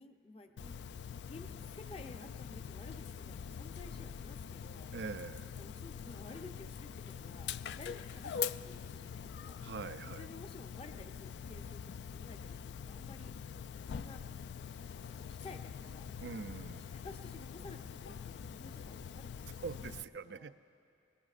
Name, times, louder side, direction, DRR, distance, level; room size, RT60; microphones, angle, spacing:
voice 1, 0.0-4.9 5.5-9.6 10.2-11.8 12.1-13.3 13.8-14.2 14.8-16.7 16.9-19.9 20.2-20.5, left 2 dB, 30° left, 5 dB, 0.6 m, -53 dB
Dog, 0.6-20.0, left 7 dB, 75° left, 0.3 m, -44 dB
voice 2, 4.9-5.5 9.6-10.3 16.2-17.0 19.6-20.5, right 5 dB, 70° right, 13 dB, 0.4 m, -44 dB
22.0 x 20.5 x 2.5 m, 2.9 s
head